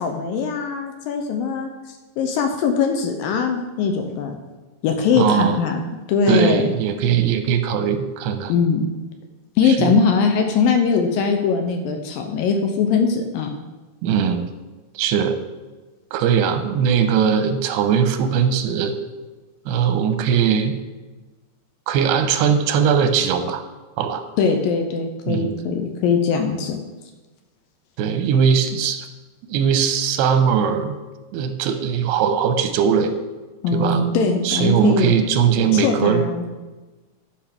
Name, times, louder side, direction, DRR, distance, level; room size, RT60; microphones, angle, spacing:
voice 1, 0.0-4.4 4.8-5.8 6.1-6.7 8.5-8.9 9.6-13.5 24.4-26.8 33.6-35.1 35.7-36.4, left 5 dB, 75° left, 5 dB, 2.3 m, -21 dB
voice 2, 5.1-5.6 6.3-8.5 9.6-9.9 14.0-14.5 15.0-15.4 16.1-18.9 19.7-20.7 21.9-23.6 24.0-24.2 25.3-25.5 28.0-29.1 29.5-31.0 31.3-33.1 33.7-34.0 34.4-36.2, right 7 dB, 90° right, 8 dB, 2.7 m, -20 dB
12.0 x 5.3 x 6.0 m, 1.2 s
omnidirectional pair, 4.8 m